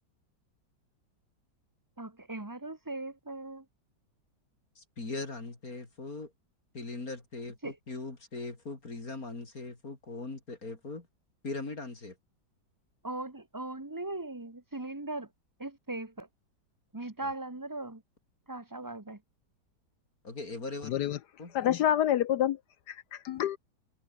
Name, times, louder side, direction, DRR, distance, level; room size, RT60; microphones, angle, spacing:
voice 1, 2.0-3.6 7.6-7.8 13.0-15.3 15.6-16.3 16.9-18.0 18.5-19.2, right 2 dB, 10° right, 1.4 m, -39 dB
voice 2, 4.8-6.3 6.7-11.1 11.4-12.2 20.2-20.9 21.4-21.5, left 3 dB, 50° left, 4.2 m, -40 dB
voice 3, 20.9-21.2 21.5-22.6 22.9-23.6, left 11 dB, 70° left, 1.2 m, -27 dB
omnidirectional pair, 1.9 m